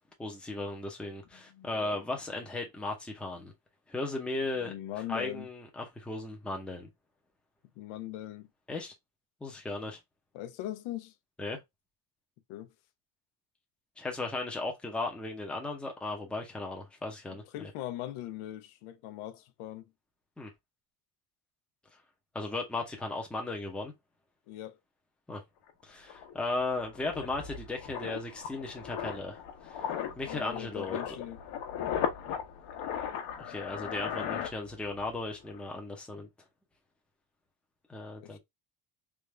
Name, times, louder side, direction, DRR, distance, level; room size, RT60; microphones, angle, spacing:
voice 1, 0.2-3.5 3.9-4.7 5.1-6.9 8.7-8.9 9.4-10.0 11.4-11.6 14.0-17.7 20.4-20.5 22.3-23.9 25.3-25.4 25.8-29.9 30.2-31.0 33.4-36.3 37.9-38.4, left 2 dB, ahead, 0.6 m, -36 dB
voice 2, 1.3-2.0 4.6-5.5 7.8-8.5 10.3-11.1 12.5-12.7 17.3-19.9 24.5-24.8 30.2-31.4 38.2-38.4, left 13 dB, 90° left, 0.7 m, -41 dB
sound 1, 25.7-25.8 26.1-35.1 35.4-35.7, left 9 dB, 65° left, 1.0 m, -37 dB
3.5 x 2.5 x 3.0 m
cardioid pair, 170°, 47 cm